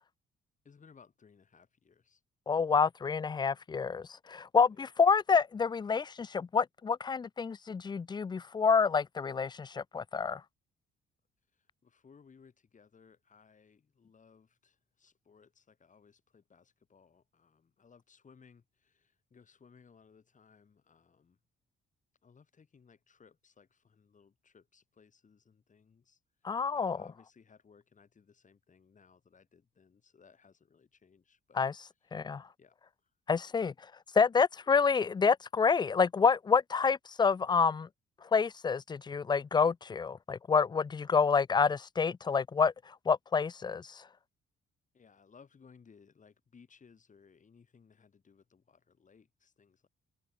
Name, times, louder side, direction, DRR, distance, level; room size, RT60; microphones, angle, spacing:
voice 1, 0.6-2.2 4.7-4.9 11.5-21.4 22.2-31.6 32.0-32.1 32.6-32.8 33.0-33.1 44.9-49.9, left 5 dB, 40° left, 5.4 m, -62 dB
voice 2, 2.5-10.4 26.4-27.0 31.6-31.7 32.1-32.4 33.3-33.7 34.1-37.9 38.3-44.0, left 5 dB, 20° left, 0.4 m, -28 dB
cardioid pair, 90°, 20 cm